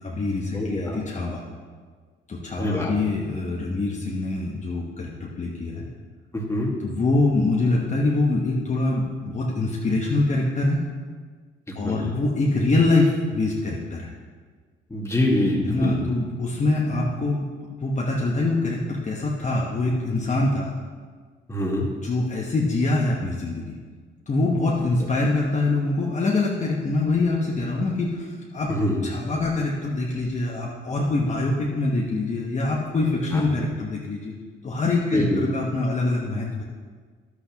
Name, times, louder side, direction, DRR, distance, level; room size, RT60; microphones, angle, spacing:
voice 1, 0.0-1.4 2.3-5.8 6.8-10.8 11.7-14.1 15.6-17.5 17.8-20.7 22.0-23.8 24.3-28.7 29.0-34.3 34.6-36.6, left 2 dB, 35° left, -3 dB, 1.2 m, -24 dB
voice 2, 0.5-1.0 2.6-2.9 6.3-6.7 11.8-12.2 14.9-16.0 21.5-21.9 28.7-29.0 33.3-33.4 35.1-35.4, left 1 dB, 15° left, -2 dB, 1.8 m, -24 dB
11.0 x 8.3 x 3.0 m, 1.5 s
cardioid pair, 90°, 20 cm